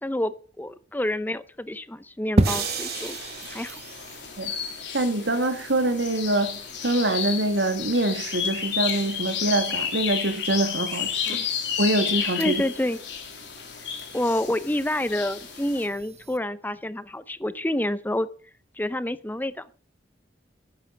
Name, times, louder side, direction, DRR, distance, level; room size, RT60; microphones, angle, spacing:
voice 1, 0.0-3.2 3.5-3.8 11.3-11.5 12.4-13.0 14.1-18.3 18.8-19.7, left 1 dB, 10° left, 0.6 m, -28 dB
sound 1, 2.4-16.4, right 1 dB, 35° right, 0.9 m, -35 dB
sound 2, 2.4-4.7, right 7 dB, 55° right, 2.9 m, -35 dB
sound 3, 2.5-15.9, left 8 dB, 80° left, 3.1 m, -32 dB
voice 2, 4.9-11.4 11.8-12.6, right 2 dB, 85° right, 2.1 m, -25 dB
12.0 x 9.6 x 6.5 m
head